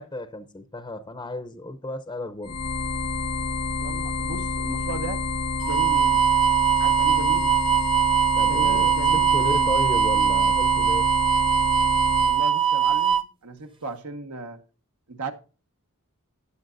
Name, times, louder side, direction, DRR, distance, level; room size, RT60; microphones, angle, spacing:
voice 1, 0.0-2.6 8.4-11.1, left 2 dB, 20° left, 0.7 m, -34 dB
sound 1, 2.4-12.4, left 3 dB, 90° left, 1.6 m, -28 dB
voice 2, 3.8-5.2 5.6-6.3 6.8-7.6 8.4-9.7 12.2-14.6 15.1-15.3, right 2 dB, 80° right, 1.5 m, -36 dB
sound 2, 5.6-13.2, right 10 dB, 25° right, 0.9 m, -21 dB
14.0 x 9.8 x 2.6 m
head